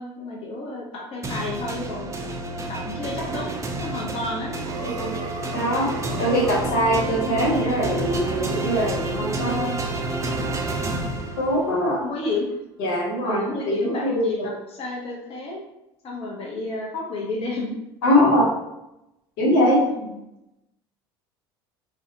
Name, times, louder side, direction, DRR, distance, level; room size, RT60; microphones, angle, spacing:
voice 1, 0.0-2.1 2.7-4.5 10.7-11.0 12.0-12.5 13.2-15.6 16.0-17.8 19.9-20.2, left 2 dB, 50° left, -1 dB, 0.7 m, -31 dB
sound 1, 1.2-11.8, right 2 dB, 25° right, 0.4 m, -29 dB
sound 2, 4.6-6.8, right 3 dB, 70° right, 0.6 m, -35 dB
voice 2, 5.5-5.9 6.2-9.8 11.4-12.0 12.8-14.5 18.0-18.5 19.4-19.8, equal, 75° left, -3 dB, 0.8 m, -22 dB
2.5 x 2.1 x 2.7 m, 0.89 s
hypercardioid pair, 75°, 13 cm